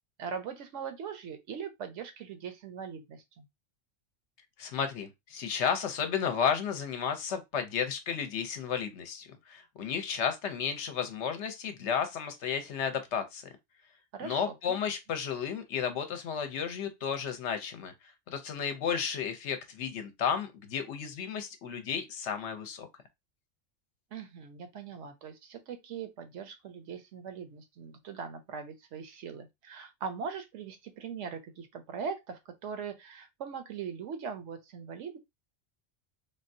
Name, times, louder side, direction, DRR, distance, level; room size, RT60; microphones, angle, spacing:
voice 1, 0.2-3.5 14.1-14.8 24.1-35.2, right 6 dB, 75° right, 0.9 m, -41 dB
voice 2, 4.6-13.4 14.2-22.9, left 7 dB, 70° left, 0.9 m, -33 dB
3.6 x 2.2 x 2.6 m
omnidirectional pair, 1.3 m